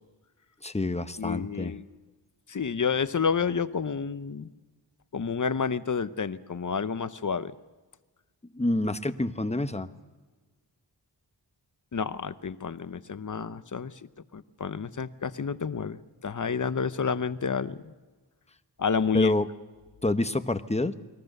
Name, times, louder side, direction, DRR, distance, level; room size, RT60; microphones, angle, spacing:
voice 1, 0.6-1.7 8.5-9.9 19.1-19.5 20.0-20.9, left 2 dB, 15° left, 10 dB, 1.0 m, -27 dB
voice 2, 1.2-1.9 2.5-4.5 5.1-7.5 11.9-13.9 14.3-17.9 18.8-19.3, left 6 dB, 45° left, 13 dB, 0.9 m, -29 dB
29.0 x 21.5 x 6.7 m, 1.3 s
wide cardioid pair, 100°, 43 cm